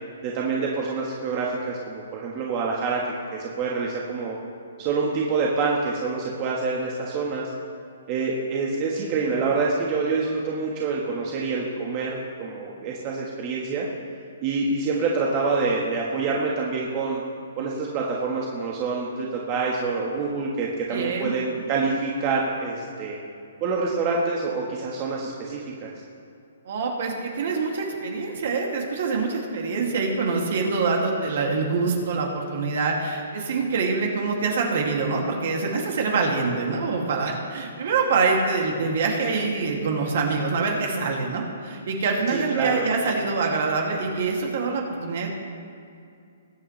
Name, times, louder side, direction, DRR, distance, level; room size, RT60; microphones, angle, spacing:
voice 1, 0.2-4.4 4.8-7.5 8.1-13.9 14.4-17.2 17.6-23.2 23.6-25.9 42.3-42.8, right 4 dB, 30° right, -3 dB, 1.4 m, -26 dB
voice 2, 20.9-21.3 26.7-45.3, right 4 dB, 60° right, 0 dB, 2.4 m, -25 dB
21.0 x 8.6 x 3.3 m, 2.4 s
hypercardioid pair, 155°, 0 cm